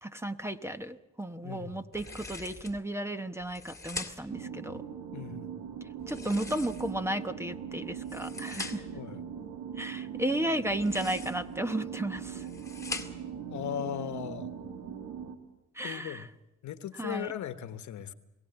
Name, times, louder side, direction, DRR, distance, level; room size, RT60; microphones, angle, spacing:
voice 1, 0.0-4.8 6.1-8.9 9.8-12.5 15.7-16.3 17.0-17.3, right 1 dB, 10° right, 10 dB, 1.0 m, -34 dB
voice 2, 1.4-1.8 5.1-5.5 8.9-9.2 13.5-14.5 15.8-16.3 16.6-18.1, left 10 dB, 70° left, 11 dB, 1.3 m, -38 dB
sound 1, 1.9-2.8 3.4-4.4 6.0-7.1 7.9-9.0 10.7-11.5 12.2-13.4, left 3 dB, 10° left, 2.1 m, -42 dB
sound 2, 4.3-15.4, right 8 dB, 75° right, 2.4 m, -40 dB
22.0 x 17.0 x 8.1 m, 0.98 s
cardioid pair, 90°, 30 cm